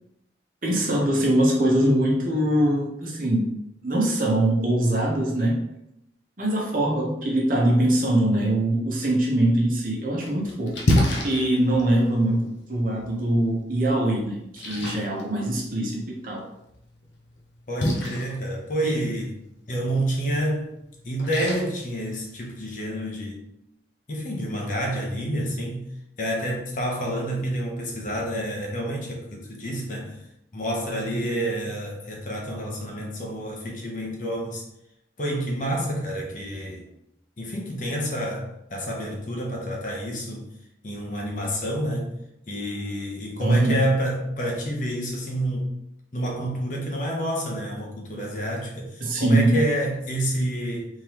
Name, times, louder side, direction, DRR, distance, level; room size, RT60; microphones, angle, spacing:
voice 1, 0.6-3.5 3.8-5.6 6.4-16.4 18.8-19.0 43.4-43.8 49.0-49.6, right 1 dB, 50° right, -3 dB, 0.9 m, -23 dB
Splash splatter, 9.8-22.8, left 1 dB, 85° left, 0.8 m, -32 dB
voice 2, 17.7-19.4 19.7-20.7 21.0-23.4 24.1-25.9 26.2-30.2 30.5-34.6 35.2-36.8 37.4-40.5 40.8-42.1 42.5-45.7 46.1-50.9, right 1 dB, 45° left, -1 dB, 0.9 m, -28 dB
3.7 x 3.2 x 2.9 m, 0.81 s
head